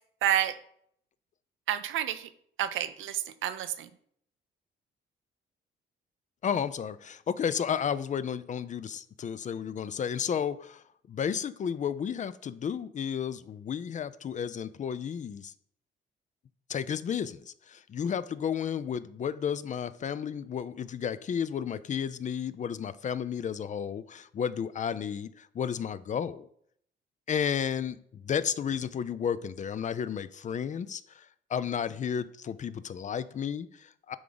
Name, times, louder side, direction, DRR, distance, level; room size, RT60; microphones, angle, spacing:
voice 1, 0.2-0.6 1.7-2.3 2.6-3.9, right 11 dB, 80° right, 11 dB, 0.6 m, -29 dB
voice 2, 6.4-15.5 16.7-26.5 27.3-34.2, left 8 dB, 40° left, 15 dB, 0.4 m, -32 dB
9.2 x 3.7 x 3.9 m, 0.66 s
cardioid pair, 90°, 20 cm